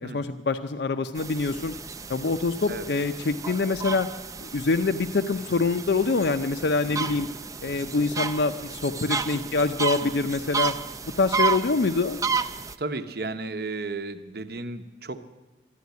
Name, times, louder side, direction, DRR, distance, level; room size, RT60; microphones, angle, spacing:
voice 1, 0.0-1.7 2.1-4.1 4.4-7.3 7.6-10.7 11.2-12.2, left 3 dB, 70° left, 7 dB, 0.5 m, -25 dB
sound 1, 1.2-12.8, right 5 dB, 20° right, 0.4 m, -32 dB
voice 2, 12.8-15.2, right 3 dB, 60° right, 9 dB, 0.9 m, -34 dB
12.5 x 11.5 x 9.4 m, 1.1 s
head